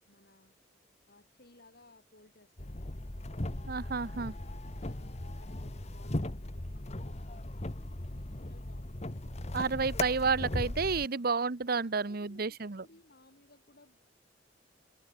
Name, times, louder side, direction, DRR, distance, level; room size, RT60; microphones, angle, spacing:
voice 1, 0.1-0.5 1.1-3.0 4.5-9.4 11.0-11.2 11.8-14.0, left 2 dB, 60° left, 4.6 m, -61 dB
sound 1, 2.6-11.1, left 1 dB, 35° left, 1.4 m, -38 dB
voice 2, 3.7-4.3 9.5-12.8, right 4 dB, 55° right, 0.9 m, -31 dB
head